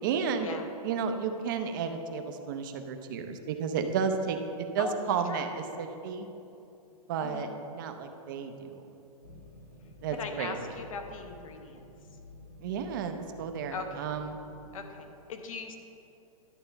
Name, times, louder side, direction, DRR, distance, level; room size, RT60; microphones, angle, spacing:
voice 1, 0.0-0.5 0.8-6.3 7.1-9.0 10.0-10.5 12.6-14.4, right 6 dB, 35° right, 6 dB, 0.6 m, -32 dB
voice 2, 7.2-7.5 10.1-11.8 13.7-14.1 14.7-15.8, left 5 dB, 60° left, 6 dB, 1.0 m, -39 dB
sound 1, 9.2-15.0, left 2 dB, 85° left, 1.9 m, -52 dB
11.0 x 4.3 x 6.9 m, 2.8 s
hypercardioid pair, 170°, 19 cm